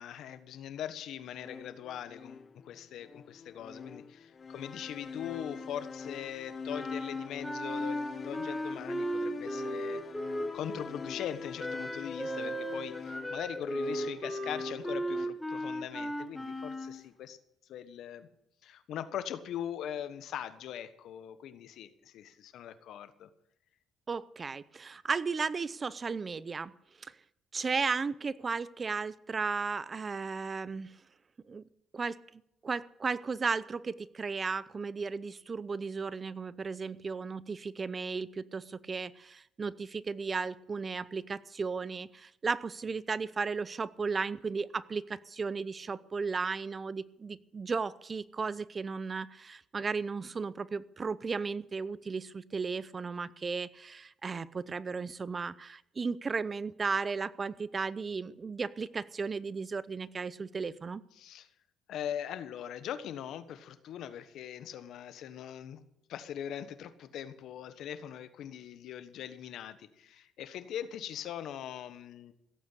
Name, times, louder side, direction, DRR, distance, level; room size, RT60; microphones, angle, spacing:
voice 1, 0.0-10.0 10.5-17.4 17.7-18.3 18.6-23.3 61.1-61.5 61.9-65.8 66.1-72.3, left 10 dB, 75° left, 12 dB, 1.3 m, -41 dB
sound 1, 1.3-15.3, left 5 dB, 40° left, 0.9 m, -44 dB
Wind instrument woodwind instrument, 6.7-10.8 11.6-17.0, equal, 5° left, 2.2 m, -36 dB
voice 2, 24.1-26.7 27.0-27.1 27.5-30.9 31.5-31.6 31.9-32.2 32.6-61.0, right 4 dB, 35° right, 18 dB, 0.6 m, -35 dB
16.5 x 8.7 x 8.1 m, 0.80 s
cardioid pair, 90°, 0 cm